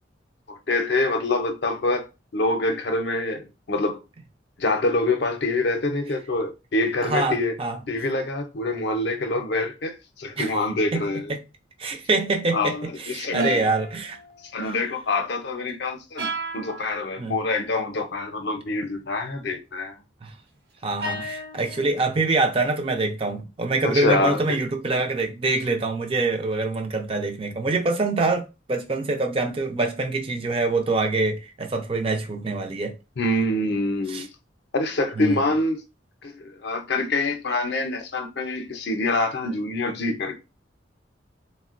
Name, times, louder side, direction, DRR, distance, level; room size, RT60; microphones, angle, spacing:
voice 1, 0.5-2.0 2.3-4.0 4.6-7.5 7.9-11.4 12.5-13.7 14.5-20.0 23.8-24.6 33.2-34.3 34.7-35.8 36.2-40.4, left 2 dB, 65° left, 0.6 m, -25 dB
voice 2, 7.0-7.8 10.4-10.6 10.9-11.0 11.8-14.2 14.6-14.8 17.2-17.4 20.2-20.3 20.8-32.9 34.1-34.3 35.2-35.4, right 3 dB, 30° right, 0.4 m, -25 dB
sound 1, 13.4-14.6 16.2-17.0 21.0-22.0, equal, 60° right, 0.8 m, -33 dB
3.6 x 2.1 x 2.4 m
head